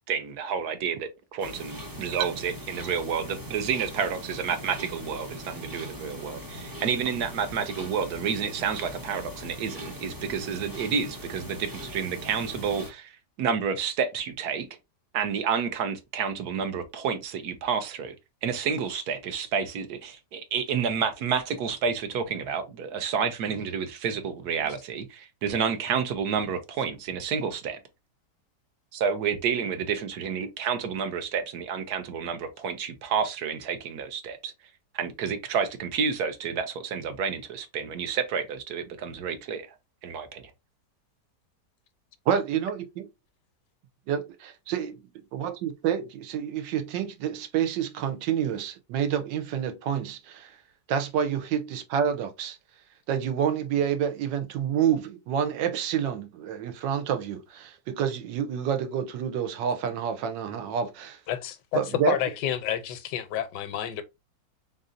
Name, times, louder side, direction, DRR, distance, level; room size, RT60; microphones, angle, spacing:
voice 1, 0.1-14.7 15.1-18.2 18.4-27.8 28.9-34.5 34.9-39.7 40.0-40.4, right 6 dB, 65° right, 1.1 m, -30 dB
sound 1, 1.4-12.9, equal, 25° right, 0.4 m, -40 dB
voice 2, 42.3-42.8 44.1-44.9 45.3-50.6 50.9-52.6 53.1-61.2 61.7-62.2, right 8 dB, 90° right, 1.4 m, -28 dB
voice 3, 61.3-64.0, left 11 dB, 80° left, 1.3 m, -30 dB
4.0 x 3.7 x 2.5 m
omnidirectional pair, 1.9 m